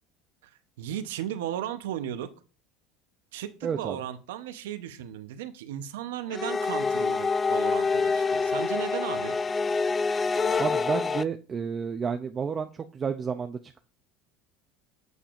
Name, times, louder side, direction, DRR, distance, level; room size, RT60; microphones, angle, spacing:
voice 1, 0.8-2.3 3.3-9.3, right 11 dB, 90° right, 10 dB, 0.7 m, -35 dB
voice 2, 3.6-4.0 10.6-13.8, right 6 dB, 30° right, 5 dB, 0.5 m, -31 dB
sound 1, 6.3-11.2, left 4 dB, 25° left, 0.3 m, -26 dB
8.0 x 6.7 x 2.5 m, 0.35 s
supercardioid pair, 105°, 0 cm